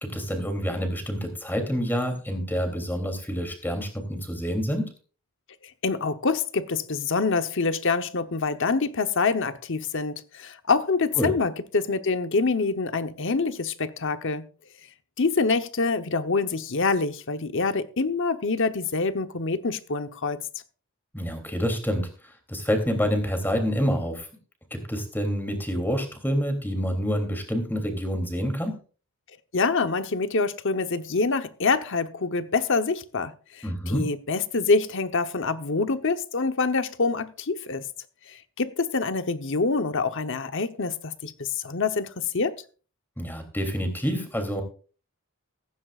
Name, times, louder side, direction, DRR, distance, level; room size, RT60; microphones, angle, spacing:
voice 1, 0.0-4.9 11.2-11.3 21.1-24.3 24.7-28.8 33.6-34.1 43.2-44.6, equal, 10° left, 3.1 m, -27 dB
voice 2, 5.8-14.4 15.2-20.4 29.5-37.9 38.3-42.6, left 4 dB, 55° left, 1.0 m, -26 dB
15.5 x 15.0 x 2.5 m
head